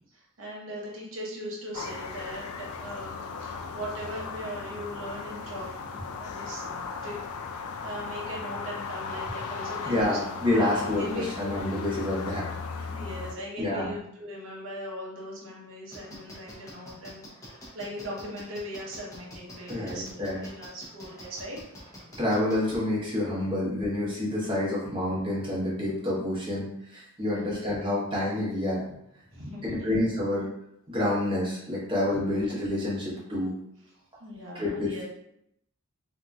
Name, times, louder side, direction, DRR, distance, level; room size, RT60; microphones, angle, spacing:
voice 1, 0.1-7.2 7.5-10.2 10.5-11.3 11.7-11.8 12.9-17.5 17.7-21.6 27.2-27.6 29.3-29.9 32.1-32.2 34.2-35.0, equal, 60° right, -4 dB, 0.9 m, -40 dB
sound 1, 1.7-13.4, left 4 dB, 85° left, 0.4 m, -37 dB
voice 2, 9.8-11.0 11.4-12.5 12.8-12.9 13.6-13.9 19.7-20.4 22.2-28.9 29.6-30.5 30.9-33.5 34.5-35.0, left 1 dB, 25° right, -7 dB, 1.1 m, -28 dB
sound 2, 15.9-22.8, equal, 15° left, 0.7 m, -45 dB
3.8 x 2.8 x 2.4 m, 0.76 s
head